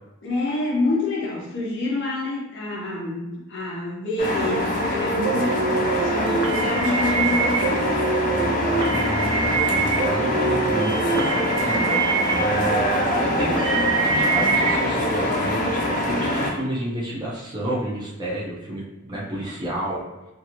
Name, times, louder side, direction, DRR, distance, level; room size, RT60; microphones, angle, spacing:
voice 1, 0.2-8.0, left 2 dB, 55° left, -4 dB, 0.8 m, -27 dB
sound 1, 4.2-16.5, left 1 dB, 40° left, 0.4 m, -24 dB
sound 2, 5.2-14.8, right 5 dB, 60° right, 0.3 m, -25 dB
voice 2, 8.3-20.0, right 1 dB, 20° right, -6 dB, 0.6 m, -29 dB
2.6 x 2.6 x 2.9 m, 1.1 s
head